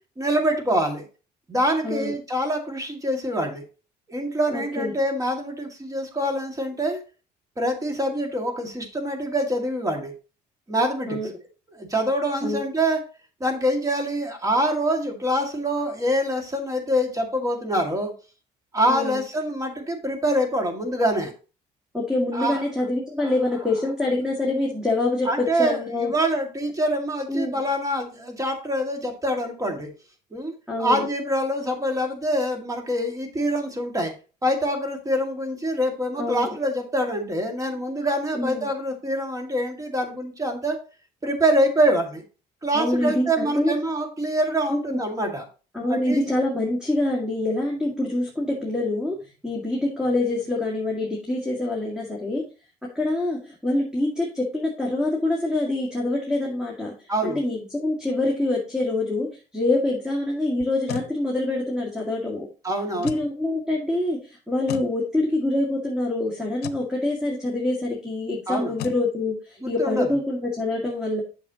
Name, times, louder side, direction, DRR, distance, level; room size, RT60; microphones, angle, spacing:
voice 1, 0.2-1.1 1.5-3.6 4.1-7.0 7.6-10.1 10.7-11.2 11.7-13.0 13.4-18.1 18.7-21.3 22.3-22.6 23.2-23.3 25.2-29.9 30.3-34.1 34.4-40.8 41.2-42.2 42.6-45.5 45.9-46.2 57.1-57.4 62.6-63.2 68.5-68.7 69.6-70.1, right 1 dB, 20° right, 4 dB, 2.1 m, -25 dB
voice 2, 1.8-2.1 4.5-4.9 11.1-11.3 12.4-12.6 18.9-19.2 21.9-26.1 27.3-27.6 30.7-31.1 36.2-36.5 38.3-38.7 42.7-43.7 44.7-45.0 45.7-49.2 49.4-52.4 52.9-62.5 63.0-71.2, left 2 dB, 5° right, -1 dB, 2.1 m, -25 dB
sound 1, 60.6-61.1 63.0-63.3 64.7-64.9 66.6-66.9 68.8-69.0, left 13 dB, 75° left, 0.7 m, -34 dB
8.5 x 6.5 x 2.9 m, 0.34 s
cardioid pair, 110°, 17 cm